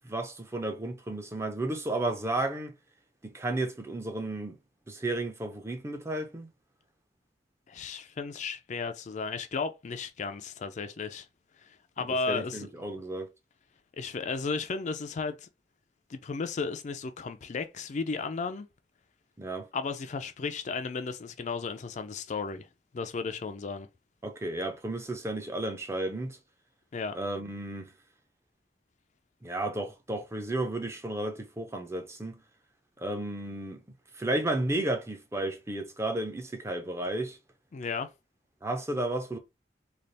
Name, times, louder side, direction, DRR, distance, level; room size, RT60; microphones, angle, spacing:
voice 1, 0.0-2.7 3.2-4.6 4.9-6.5 12.3-13.3 19.4-19.7 24.2-26.4 27.1-27.9 29.4-32.4 33.0-33.8 34.2-37.4 38.6-39.4, right 2 dB, 15° right, 0.6 m, -33 dB
voice 2, 7.7-11.3 11.6-12.7 14.0-15.5 16.1-18.7 19.7-22.7 22.9-23.9 26.9-27.2 37.7-38.1, left 4 dB, 40° left, 0.4 m, -34 dB
3.3 x 2.4 x 4.0 m
head